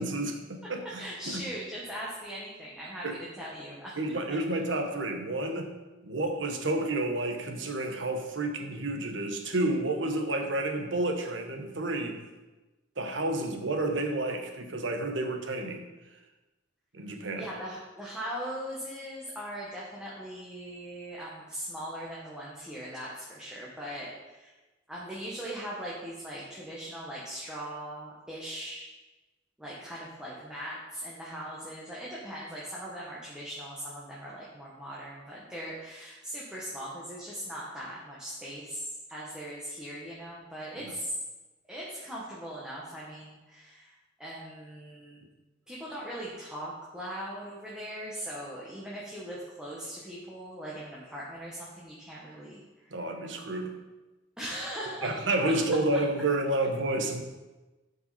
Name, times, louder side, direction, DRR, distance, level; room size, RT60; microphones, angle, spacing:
voice 1, 0.0-1.4 3.0-3.2 4.0-5.7 6.0-12.2 13.0-15.8 16.9-17.5 52.9-53.7 55.0-57.2, right 2 dB, 90° right, 4 dB, 1.2 m, -30 dB
voice 2, 1.0-4.0 17.4-24.5 24.9-28.9 29.6-41.2 41.7-45.2 45.7-53.0 54.4-55.2, equal, 5° right, -7 dB, 1.4 m, -40 dB
11.5 x 5.3 x 4.2 m, 1.1 s
head